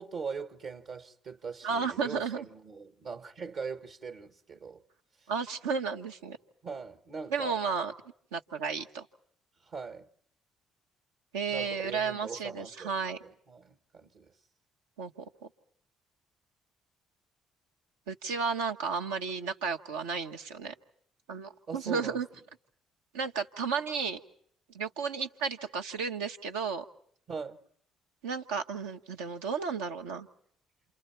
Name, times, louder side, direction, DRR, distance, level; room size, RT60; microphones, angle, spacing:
voice 1, 0.0-4.8 6.6-7.6 9.7-10.1 11.5-14.3 21.7-22.2 27.3-27.6, right 5 dB, 65° right, 1.4 m, -41 dB
voice 2, 1.6-2.5 5.3-6.4 7.3-7.9 8.3-9.1 11.3-13.2 15.0-15.3 18.1-20.7 21.3-22.3 23.1-24.2 24.7-26.8 28.2-30.3, right 5 dB, 90° right, 1.1 m, -33 dB
28.5 x 28.0 x 4.5 m
hypercardioid pair, 55°, 0 cm